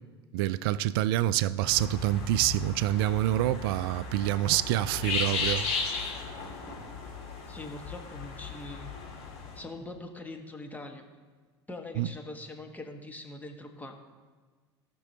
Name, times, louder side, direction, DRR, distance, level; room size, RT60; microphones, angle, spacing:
voice 1, 0.3-5.7 12.0-12.1, right 14 dB, 55° right, 0.4 m, -27 dB
sound 1, 1.6-9.6, left 4 dB, 50° left, 2.2 m, -35 dB
voice 2, 7.5-8.9 9.5-11.0 11.7-13.9, left 2 dB, 10° left, 1.3 m, -42 dB
18.0 x 6.2 x 2.8 m
figure-of-eight pair, 70°, 14 cm